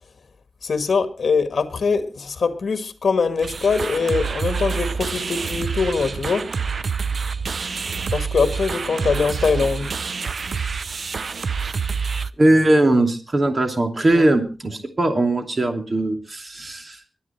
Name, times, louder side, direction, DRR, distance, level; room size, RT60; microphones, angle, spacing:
voice 1, 0.6-6.5 8.1-9.9 14.1-14.3, left 5 dB, 70° left, 1.5 m, -22 dB
sound 1, 3.4-12.3, right 5 dB, 60° right, 0.6 m, -27 dB
voice 2, 12.4-17.0, right 1 dB, 35° right, 2.7 m, -19 dB
22.5 x 8.6 x 4.4 m
wide cardioid pair, 120°, 0 cm